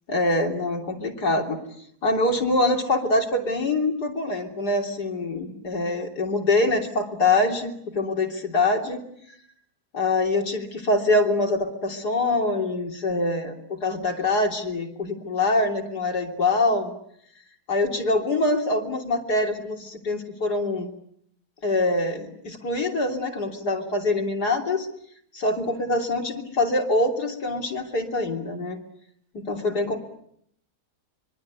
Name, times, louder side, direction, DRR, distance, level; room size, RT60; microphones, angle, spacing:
voice 1, 0.1-1.6 2.0-9.1 9.9-16.9 17.7-20.9 21.6-24.9 25.3-28.8 29.3-30.0, left 2 dB, 70° left, 2 dB, 3.7 m, -24 dB
25.0 x 23.0 x 9.6 m, 0.71 s
omnidirectional pair, 1.8 m